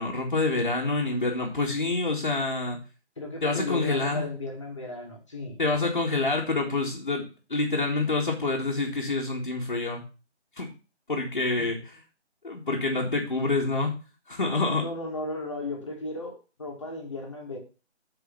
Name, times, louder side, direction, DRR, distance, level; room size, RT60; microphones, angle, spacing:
voice 1, 0.0-2.8 3.4-4.3 5.6-10.0 10.6-10.7 11.1-11.8 12.4-13.9 14.3-14.8, left 3 dB, 40° left, -4 dB, 1.9 m, -27 dB
voice 2, 3.2-5.6 11.5-11.7 14.8-17.6, left 2 dB, 25° left, 0 dB, 2.1 m, -35 dB
7.9 x 5.0 x 6.7 m, 0.32 s
figure-of-eight pair, 170°, 34 cm